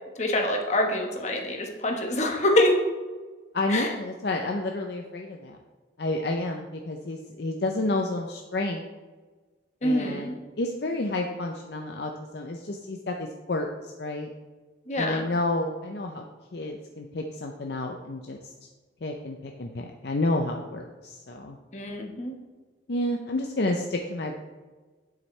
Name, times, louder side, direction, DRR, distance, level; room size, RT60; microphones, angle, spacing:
voice 1, 0.2-2.8 3.7-3.9 9.8-10.3 14.9-15.3 21.7-22.4, left 1 dB, 35° left, 2 dB, 1.2 m, -25 dB
voice 2, 3.5-5.6 6.0-8.9 9.8-14.3 15.0-16.2 16.5-18.5 19.0-21.6 22.9-24.4, left 2 dB, 55° left, 2 dB, 0.6 m, -30 dB
9.1 x 7.7 x 3.2 m, 1.3 s
head